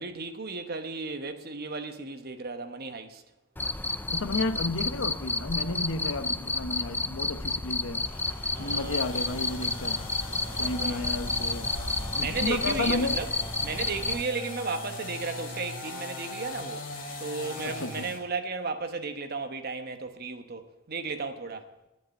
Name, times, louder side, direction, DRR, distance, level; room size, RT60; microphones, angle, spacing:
voice 1, 0.0-3.2 8.5-9.2 10.5-11.1 12.2-13.3 13.6-16.8 17.2-21.7, right 4 dB, 50° right, 1.0 m, -34 dB
Cricket, 3.6-14.2, left 2 dB, 10° left, 0.4 m, -31 dB
voice 2, 4.1-8.1 8.6-10.0 10.5-11.8 12.1-13.1 17.6-18.1, left 2 dB, 70° left, 0.9 m, -32 dB
sound 1, 8.0-18.3, left 2 dB, 40° left, 2.1 m, -40 dB
11.5 x 8.4 x 8.1 m
head